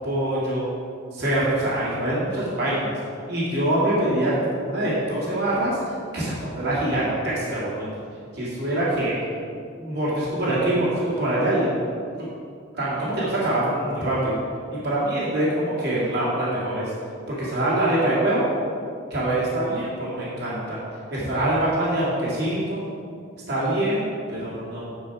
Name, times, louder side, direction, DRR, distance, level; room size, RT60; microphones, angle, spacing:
voice 1, 0.0-0.7 1.1-2.9 3.3-5.8 6.1-7.9 8.3-9.2 9.8-11.7 12.2-12.3 12.8-14.4 14.8-16.9 17.4-18.5 19.1-20.8 21.1-22.8 23.5-24.9, right 1 dB, 50° right, -9 dB, 2.2 m, -24 dB
9.2 x 5.3 x 4.7 m, 2.4 s
head